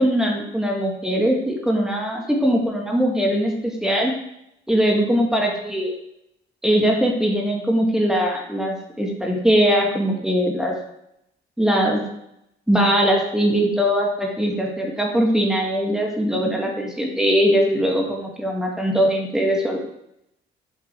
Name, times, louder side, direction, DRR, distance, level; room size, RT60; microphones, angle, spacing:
voice 1, 0.0-4.1 4.7-6.0 6.6-10.7 11.6-12.0 12.7-19.8, equal, 5° right, -1 dB, 2.2 m, -21 dB
7.9 x 5.9 x 4.7 m, 0.80 s
cardioid pair, 90°, 20 cm